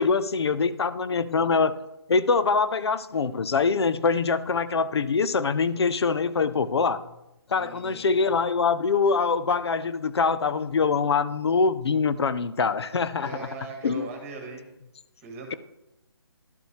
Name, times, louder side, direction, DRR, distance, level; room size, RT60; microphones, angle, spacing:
voice 1, 0.0-1.8 2.1-7.0 7.5-13.5 13.8-14.1, left 5 dB, 75° left, 0.6 m, -24 dB
voice 2, 7.5-8.1 13.2-14.6 15.2-15.5, right 3 dB, 15° right, 1.4 m, -39 dB
12.0 x 5.3 x 3.3 m
hypercardioid pair, 165°, 14 cm